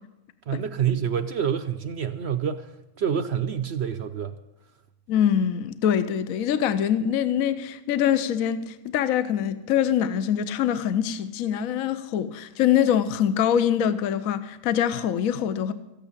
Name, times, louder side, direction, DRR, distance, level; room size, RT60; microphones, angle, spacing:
voice 1, 0.5-2.7 3.0-4.3, right 8 dB, 55° right, 0.7 m, -27 dB
voice 2, 5.1-15.7, left 9 dB, 65° left, 1.1 m, -24 dB
14.0 x 9.1 x 8.5 m
omnidirectional pair, 1.7 m